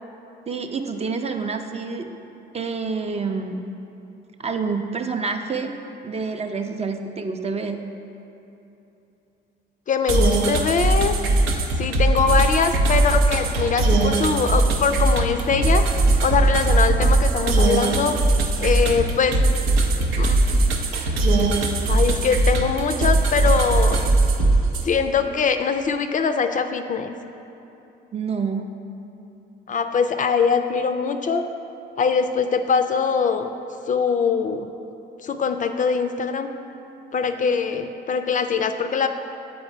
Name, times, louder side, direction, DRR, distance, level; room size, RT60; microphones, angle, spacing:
voice 1, 0.5-2.1 2.5-3.7 4.4-5.8 6.0-7.9 12.1-12.2 28.1-28.7, right 4 dB, 30° right, 6 dB, 0.4 m, -28 dB
voice 2, 9.9-11.1 11.8-15.9 16.2-18.2 18.6-19.4 20.2-20.4 21.9-24.0 24.8-27.1 29.7-31.4 32.0-33.5 33.9-34.7 35.2-36.5 37.1-39.1, left 6 dB, 40° left, 7 dB, 0.4 m, -22 dB
sound 1, 10.1-24.9, right 2 dB, 90° right, 0.6 m, -20 dB
7.9 x 4.0 x 4.5 m, 2.9 s
cardioid pair, 90°, 20 cm